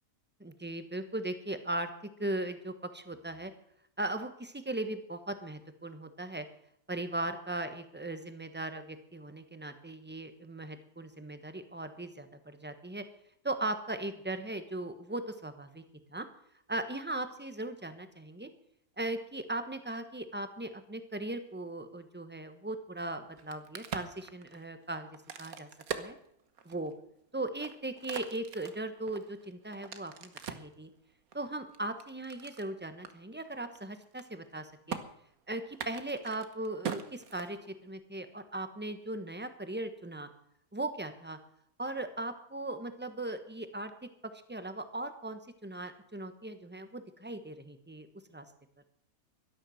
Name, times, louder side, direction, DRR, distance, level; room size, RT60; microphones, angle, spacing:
voice 1, 0.4-3.5 4.0-6.4 6.9-13.0 13.4-15.8 16.1-16.3 16.7-18.5 19.0-25.1 25.4-25.7 26.0-26.2 26.6-26.9 27.3-30.9 31.3-35.0 35.5-40.3 40.7-41.4 41.8-43.9 44.5-48.1 48.3-48.4, right 2 dB, 10° right, 9 dB, 1.1 m, -38 dB
Crack, 23.3-26.9 27.4-30.7 31.3-32.7 33.0-33.1 33.4-33.8 34.0-34.6 34.9-35.0 35.7-37.9, right 7 dB, 75° right, 1.6 m, -42 dB
12.5 x 11.5 x 7.7 m, 0.70 s
omnidirectional pair, 1.6 m